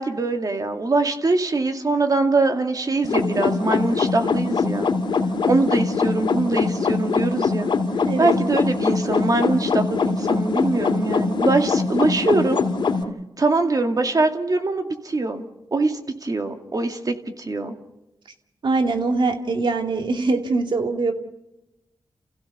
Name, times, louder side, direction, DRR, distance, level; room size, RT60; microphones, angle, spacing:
voice 1, 0.0-4.9 5.4-7.7 8.2-12.6 13.4-17.7, right 3 dB, 45° right, 5 dB, 2.4 m, -23 dB
sound 1, 3.0-13.0, left 4 dB, 70° left, 2.4 m, -23 dB
voice 2, 18.6-21.1, right 3 dB, 70° right, 5 dB, 2.4 m, -22 dB
29.5 x 15.5 x 6.9 m, 0.93 s
cardioid pair, 65°, 8 cm